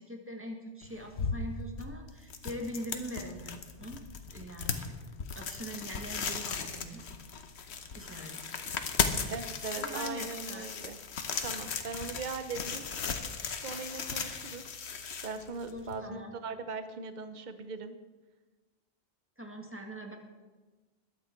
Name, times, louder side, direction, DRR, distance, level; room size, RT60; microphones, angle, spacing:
voice 1, 0.0-4.0 4.3-4.9 5.4-7.0 7.9-8.5 9.8-10.7 15.7-16.3 19.4-20.2, equal, 10° right, 2 dB, 1.8 m, -42 dB
sound 1, 0.8-16.0, left 5 dB, 75° left, 1.3 m, -37 dB
voice 2, 9.2-11.0 11.4-12.8 13.6-14.8 15.2-17.9, right 4 dB, 45° right, 10 dB, 0.9 m, -40 dB
21.0 x 8.8 x 4.5 m, 1.2 s
omnidirectional pair, 1.1 m